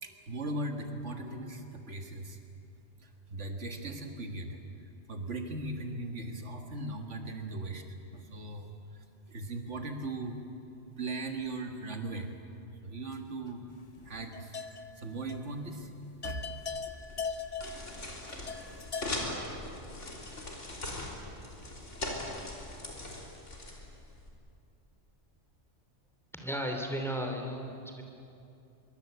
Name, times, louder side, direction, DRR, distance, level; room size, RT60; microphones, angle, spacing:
voice 1, 0.0-2.4 3.0-4.6 5.1-10.4 11.0-12.3 12.8-13.7 14.0-14.6 15.0-15.9 16.2-16.4, right 2 dB, 75° right, 4 dB, 2.1 m, -38 dB
sound 1, 14.0-15.0 15.3-15.5 15.8-15.9 16.2-19.2, left 5 dB, 35° left, 1.0 m, -39 dB
sound 2, 16.2-24.3, left 1 dB, 85° left, 3.9 m, -41 dB
voice 2, 26.3-28.0, equal, ahead, 3 dB, 2.9 m, -35 dB
24.5 x 22.5 x 8.2 m, 2.7 s
omnidirectional pair, 1.2 m